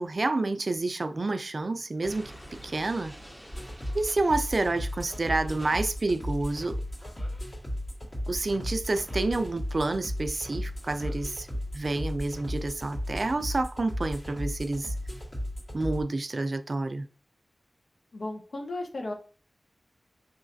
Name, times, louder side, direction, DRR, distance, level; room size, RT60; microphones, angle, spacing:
voice 1, 0.0-3.1 3.9-6.8 8.3-11.5 11.7-14.9 15.7-17.1, right 2 dB, 50° right, 0.3 m, -29 dB
Explosion, 2.0-6.8, equal, 10° left, 0.7 m, -49 dB
sound 1, 3.5-16.0, equal, 50° left, 1.9 m, -35 dB
voice 2, 18.1-19.1, left 2 dB, 85° left, 0.9 m, -35 dB
5.5 x 3.1 x 2.6 m
wide cardioid pair, 95°, 0 cm